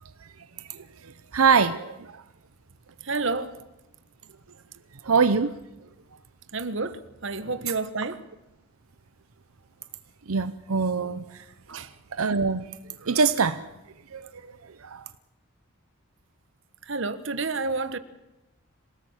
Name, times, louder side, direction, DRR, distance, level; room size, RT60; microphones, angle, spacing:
voice 1, 0.6-2.2 5.0-5.5 10.3-11.4 12.1-12.7 13.0-13.7 14.1-15.0, right 5 dB, 80° right, 0.8 m, -24 dB
voice 2, 3.0-3.5 6.5-8.2 11.7-11.9 16.9-18.0, right 3 dB, 60° right, 1.3 m, -29 dB
27.0 x 18.0 x 7.4 m
head